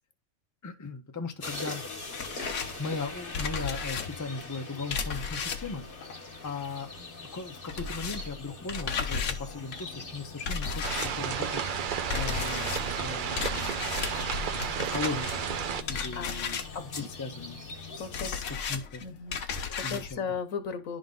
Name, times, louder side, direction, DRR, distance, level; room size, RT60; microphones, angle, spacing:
voice 1, 0.6-1.8 2.8-6.1 6.4-14.0 14.4-17.6 17.9-19.1 19.8-20.3, left 3 dB, 20° left, 0.6 m, -38 dB
sound 1, 1.4-18.4, left 3 dB, 45° left, 1.6 m, -43 dB
sound 2, 1.5-7.0 7.2-20.1, left 6 dB, 70° left, 1.2 m, -36 dB
sound 3, 10.8-15.8, right 7 dB, 55° right, 0.6 m, -32 dB
voice 2, 16.7-17.1 18.0-18.3 19.0-21.0, left 6 dB, 85° left, 1.4 m, -36 dB
11.0 x 3.8 x 3.8 m
omnidirectional pair, 1.4 m